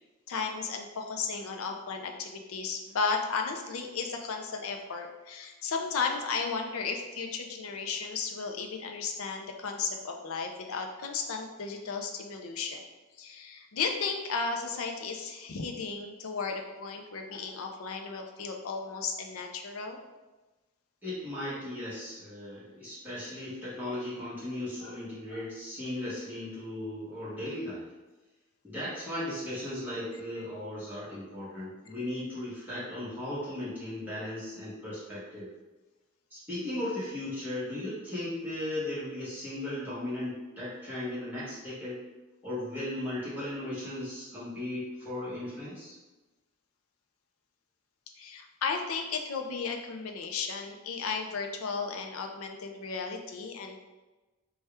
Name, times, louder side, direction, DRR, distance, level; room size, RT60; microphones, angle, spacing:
voice 1, 0.3-12.9 13.2-20.0 24.8-24.9 25.3-25.4 48.2-53.8, left 5 dB, 75° left, 4 dB, 0.5 m, -34 dB
voice 2, 21.0-27.9 28.6-35.5 36.3-42.0 42.4-45.9, left 1 dB, 10° right, -11 dB, 1.2 m, -36 dB
4.2 x 2.3 x 3.4 m, 1.2 s
head